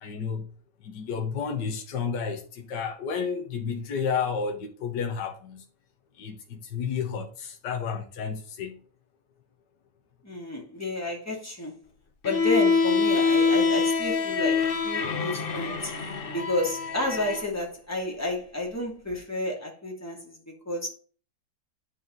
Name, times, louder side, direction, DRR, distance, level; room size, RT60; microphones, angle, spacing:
voice 1, 0.0-0.5 0.8-5.6 6.2-8.8, left 6 dB, 65° left, 1.8 m, -31 dB
voice 2, 10.2-11.7 12.2-15.9 16.3-20.9, left 1 dB, 10° left, 2.5 m, -31 dB
Bowed string instrument, 12.2-17.5, left 4 dB, 45° left, 0.8 m, -25 dB
9.7 x 4.7 x 3.9 m
omnidirectional pair, 2.0 m